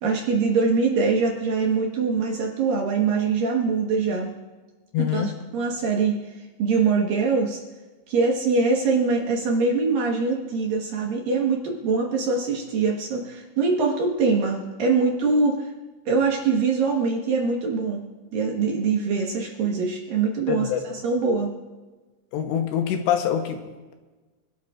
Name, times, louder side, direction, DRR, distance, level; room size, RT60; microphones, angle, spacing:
voice 1, 0.0-4.3 5.1-6.2 6.6-7.6 8.1-15.7 16.1-18.0 18.3-21.5, right 4 dB, 60° right, 0 dB, 2.6 m, -23 dB
voice 2, 4.9-5.3 20.5-20.8 22.3-23.9, left 9 dB, 75° left, 4 dB, 3.1 m, -25 dB
26.5 x 12.5 x 2.5 m, 1.2 s
omnidirectional pair, 5.3 m